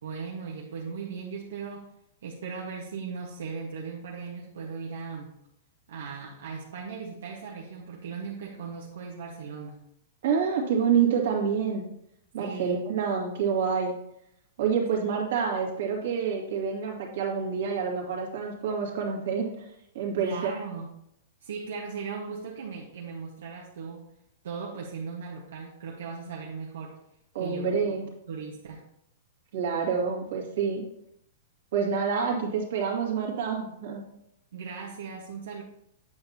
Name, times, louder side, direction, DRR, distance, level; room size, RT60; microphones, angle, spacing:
voice 1, 0.0-1.9 2.2-5.3 5.9-9.8 12.4-12.7 14.9-15.1 20.2-20.9 21.4-24.1 24.4-26.9 27.4-27.7 28.3-28.8 34.5-35.6, right 5 dB, 85° right, -3 dB, 1.3 m, -38 dB
voice 2, 10.2-11.8 12.3-13.9 14.6-19.7 19.9-20.5 27.3-28.1 29.5-30.8 31.7-34.0, right 6 dB, 65° right, -1 dB, 2.2 m, -27 dB
8.6 x 7.0 x 2.9 m, 0.76 s
supercardioid pair, 165°, 0 cm